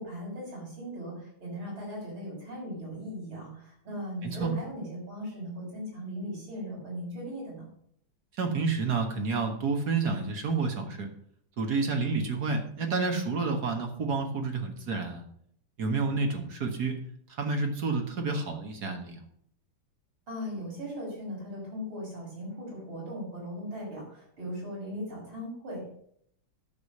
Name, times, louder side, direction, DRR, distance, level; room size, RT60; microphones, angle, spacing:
voice 1, 0.0-7.6 20.3-25.9, equal, 85° right, -3 dB, 6.4 m, -38 dB
voice 2, 4.2-4.5 8.4-11.1 11.6-15.2 15.8-17.0 17.3-19.2, right 4 dB, 55° right, 4 dB, 1.9 m, -29 dB
9.8 x 6.8 x 6.6 m, 0.67 s
omnidirectional pair, 2.2 m